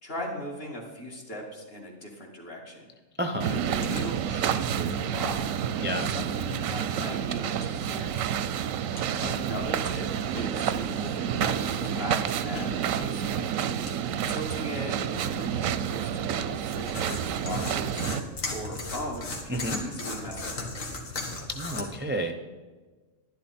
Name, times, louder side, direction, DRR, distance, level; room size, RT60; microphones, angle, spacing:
voice 1, 0.0-2.9 3.4-5.4 6.0-8.2 9.2-12.2 12.4-13.5 14.3-18.3 18.5-20.9, equal, 45° left, -1 dB, 2.4 m, -39 dB
voice 2, 3.2-3.6 5.8-6.1 19.5-19.8 21.5-22.4, equal, 20° right, 4 dB, 0.3 m, -30 dB
sound 1, 3.4-18.2, right 9 dB, 90° right, 1.0 m, -29 dB
sound 2, 3.7-21.8, left 2 dB, 80° left, 2.1 m, -40 dB
11.5 x 11.0 x 4.3 m, 1.3 s
omnidirectional pair, 1.4 m